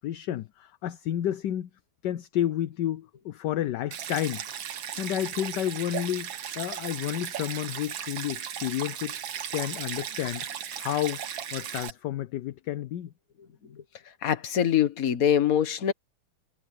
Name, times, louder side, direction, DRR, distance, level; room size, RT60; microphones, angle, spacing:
voice 1, 0.0-1.7 2.0-4.4 4.9-9.2 9.5-10.4 10.7-11.2 11.5-13.1, left 12 dB, 70° left, 1.2 m, -31 dB
Stream, 3.9-11.9, right 9 dB, 75° right, 2.0 m, -36 dB
voice 2, 14.2-15.9, left 9 dB, 50° left, 1.6 m, -23 dB
omnidirectional pair, 2.2 m